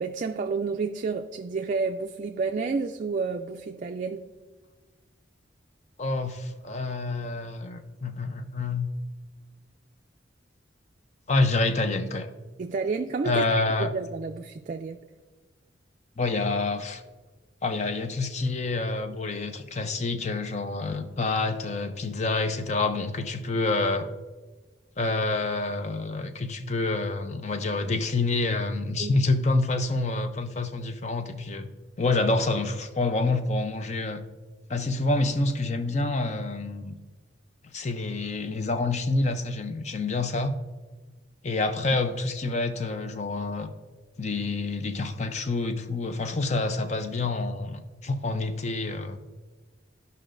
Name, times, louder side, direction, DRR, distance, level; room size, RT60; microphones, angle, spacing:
voice 1, 0.0-4.3 12.6-13.4 13.8-15.0 29.0-29.2, right 4 dB, 45° right, 4 dB, 0.3 m, -30 dB
voice 2, 6.0-8.9 11.3-12.3 13.2-13.9 16.2-17.0 17.6-24.1 25.0-31.7 32.0-34.2 34.7-37.0 37.7-40.5 41.4-43.7 44.2-49.2, left 3 dB, 40° left, 8 dB, 0.5 m, -27 dB
14.0 x 5.4 x 2.5 m, 1.3 s
head